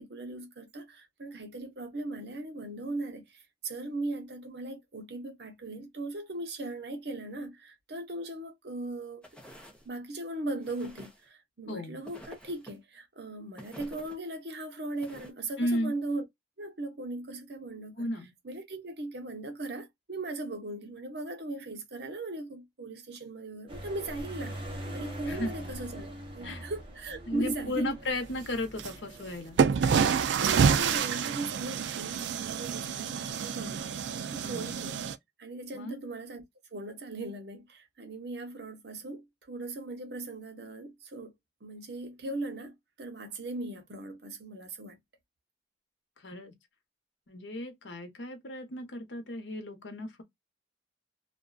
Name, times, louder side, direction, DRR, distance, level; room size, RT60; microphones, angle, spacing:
voice 1, 0.0-9.2 9.8-16.2 16.6-18.1 18.4-27.9 30.4-33.9 34.3-35.1 35.4-36.4 36.7-41.3 41.6-45.0, right 2 dB, 60° right, 0.8 m, -38 dB
sound 1, 9.2-9.9 10.6-11.3 12.0-12.8 13.6-14.2 15.0-15.3, equal, 5° left, 0.7 m, -49 dB
voice 2, 11.7-12.0 15.6-15.9 18.0-18.3 25.3-25.5 26.4-26.7 27.3-29.6 34.4-34.7 35.7-36.0 46.2-46.5 47.3-50.2, left 1 dB, 85° left, 0.9 m, -34 dB
sound 2, 23.7-30.7, equal, 30° right, 0.9 m, -43 dB
sound 3, 28.8-28.9 29.6-35.2, right 6 dB, 75° right, 0.3 m, -28 dB
2.5 x 2.2 x 2.3 m
head